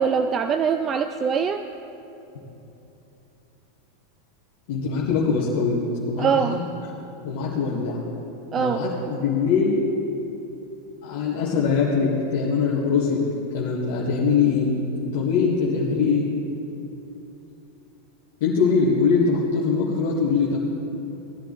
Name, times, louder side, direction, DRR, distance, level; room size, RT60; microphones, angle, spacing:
voice 1, 0.0-1.6 6.2-6.6 8.5-8.8, right 6 dB, 30° right, 9 dB, 0.4 m, -23 dB
voice 2, 4.7-5.8 6.1-6.7 7.2-8.0 8.6-9.8 11.0-13.2 13.5-14.7 15.1-16.3 18.4-20.6, left 5 dB, 60° left, -6 dB, 1.8 m, -22 dB
18.5 x 11.0 x 3.2 m, 3.0 s
figure-of-eight pair, 90°, 0 cm